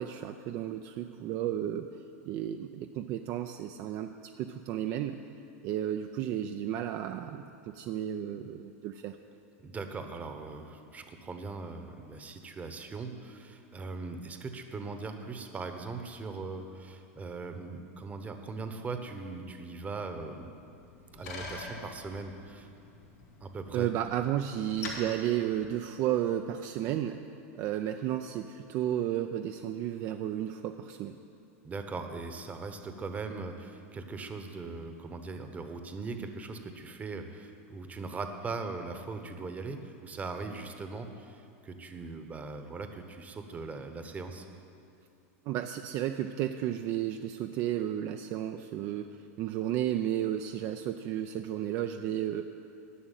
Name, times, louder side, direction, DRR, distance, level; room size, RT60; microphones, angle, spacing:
voice 1, 0.0-1.9 2.2-4.1 4.4-5.2 5.6-7.4 7.7-9.2 23.7-27.2 27.5-31.2 45.5-49.1 49.4-52.4, right 11 dB, 45° right, 6 dB, 0.5 m, -32 dB
voice 2, 9.6-20.5 21.1-22.7 23.4-23.9 31.6-44.5, right 3 dB, 20° right, 7 dB, 1.0 m, -40 dB
Bicycle, 20.6-26.3, left 3 dB, 90° left, 3.1 m, -45 dB
11.0 x 6.1 x 9.1 m, 2.6 s
supercardioid pair, 125°, 8 cm